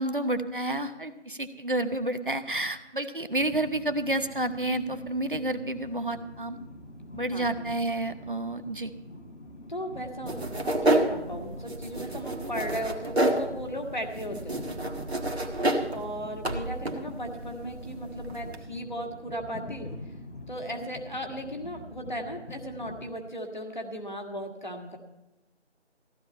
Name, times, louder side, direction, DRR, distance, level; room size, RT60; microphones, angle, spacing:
voice 1, 0.0-6.6 7.1-8.9, right 1 dB, 45° right, 9 dB, 1.0 m, -30 dB
Train, 3.4-23.1, left 1 dB, 85° left, 2.3 m, -45 dB
voice 2, 7.3-7.7 9.7-14.7 15.9-19.9 20.5-25.0, equal, 40° left, 3 dB, 1.8 m, -36 dB
sound 1, 10.3-18.6, right 1 dB, 65° right, 1.6 m, -30 dB
15.0 x 12.5 x 4.3 m, 1.0 s
figure-of-eight pair, 180°, 35 cm